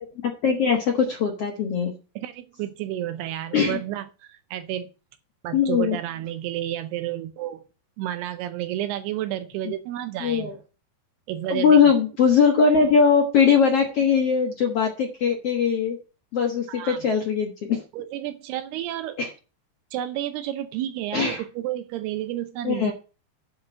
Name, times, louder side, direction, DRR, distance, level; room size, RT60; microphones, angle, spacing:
voice 1, 0.2-1.9 3.5-3.8 5.5-6.0 9.6-9.7 10.2-10.5 11.5-16.0 16.3-17.8 19.2-19.3 21.1-21.4 22.6-22.9, left 6 dB, 65° left, 1.4 m, -20 dB
voice 2, 2.2-4.9 5.4-7.6 8.0-10.6 11.3-11.9 16.7-17.1 17.9-19.2 19.9-22.9, right 12 dB, 80° right, 2.6 m, -31 dB
9.7 x 4.8 x 7.7 m
omnidirectional pair, 4.9 m